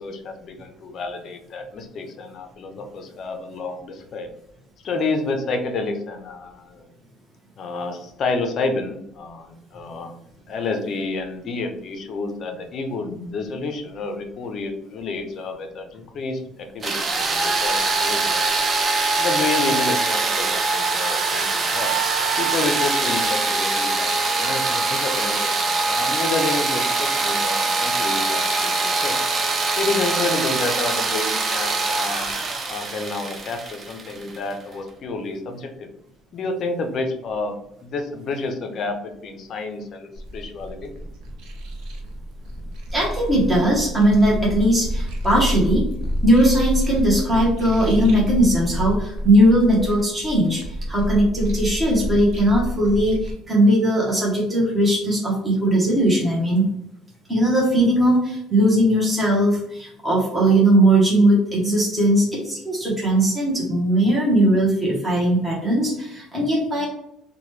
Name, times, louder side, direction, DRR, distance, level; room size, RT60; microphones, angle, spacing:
voice 1, 0.0-4.3 4.8-6.9 7.6-10.2 10.5-18.6 19.2-21.9 22.4-29.2 29.8-32.3 32.7-35.9 36.3-37.6 37.8-40.9, left 3 dB, 40° left, 5 dB, 0.5 m, -29 dB
sound 1, 16.8-34.5, right 3 dB, 25° right, 0.4 m, -23 dB
sound 2, 40.1-53.3, equal, 70° right, 0.6 m, -28 dB
voice 2, 42.9-45.8 46.2-56.7 57.3-66.9, right 1 dB, 10° right, -5 dB, 0.8 m, -19 dB
2.9 x 2.1 x 3.1 m, 0.75 s
cardioid pair, 170°, 0 cm